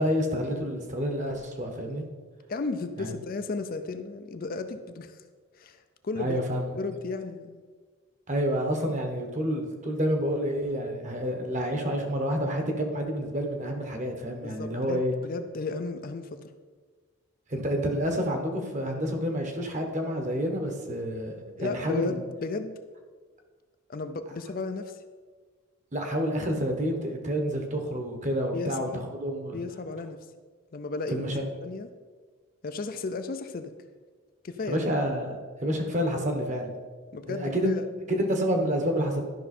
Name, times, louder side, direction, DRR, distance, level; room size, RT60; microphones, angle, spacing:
voice 1, 0.0-2.0 3.0-3.1 6.2-6.7 8.3-15.1 17.5-22.2 25.9-29.6 31.1-31.4 34.7-36.7 37.3-37.7 38.2-39.2, equal, 35° right, 4 dB, 1.1 m, -29 dB
voice 2, 2.5-5.2 5.5-6.4 6.7-7.6 14.4-16.5 21.6-22.8 23.9-25.0 28.5-29.0 29.5-30.2 30.7-31.3 31.6-31.9 32.6-33.7 34.4-34.8 37.1-37.9, left 3 dB, 40° left, 8 dB, 0.4 m, -34 dB
12.0 x 5.6 x 4.2 m, 1.5 s
head